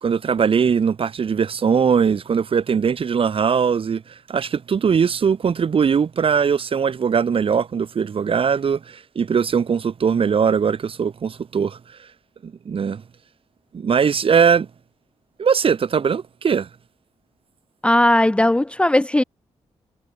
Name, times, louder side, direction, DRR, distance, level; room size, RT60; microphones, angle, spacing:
voice 1, 0.0-11.8 12.4-13.0 13.7-14.7 15.4-16.7, right 6 dB, 50° right, 3.5 m, -20 dB
voice 2, 17.8-19.2, left 1 dB, 10° left, 0.8 m, -17 dB
wide cardioid pair, 115°, 12 cm